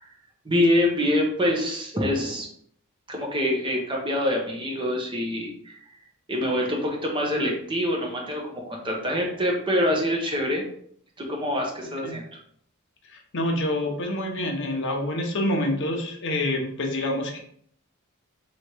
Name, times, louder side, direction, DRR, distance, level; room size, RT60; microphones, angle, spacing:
voice 1, 0.4-2.5 3.1-5.8 6.3-10.6 11.2-12.2, left 1 dB, 25° right, -1 dB, 1.0 m, -25 dB
voice 2, 13.3-17.4, left 1 dB, 60° left, 2 dB, 0.9 m, -27 dB
3.3 x 3.2 x 4.3 m, 0.63 s
head